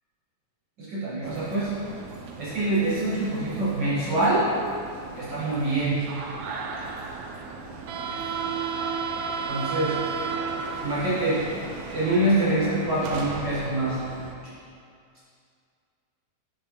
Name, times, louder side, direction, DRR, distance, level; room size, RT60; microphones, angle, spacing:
voice 1, 0.8-1.7 2.4-4.5 5.2-6.0 9.5-9.9 10.8-11.4 11.9-14.0, right 1 dB, 50° right, -10 dB, 1.5 m, -25 dB
sound 1, 1.2-14.3, right 5 dB, 80° right, 1.8 m, -34 dB
8.7 x 5.1 x 3.0 m, 2.3 s
omnidirectional pair, 3.6 m